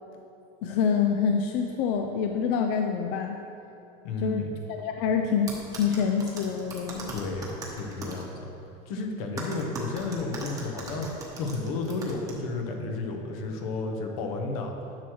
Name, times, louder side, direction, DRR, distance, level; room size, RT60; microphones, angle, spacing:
voice 1, 0.6-3.4 4.2-7.1, left 6 dB, 55° left, 4 dB, 0.4 m, -26 dB
voice 2, 4.0-4.5 7.1-8.5 8.9-11.1 11.4-14.7, left 3 dB, 80° left, 3 dB, 1.1 m, -32 dB
sound 1, 5.5-8.2 9.4-12.3, right 3 dB, 20° right, 0.9 m, -39 dB
10.0 x 6.2 x 3.1 m, 2.9 s
cardioid pair, 180°, 18 cm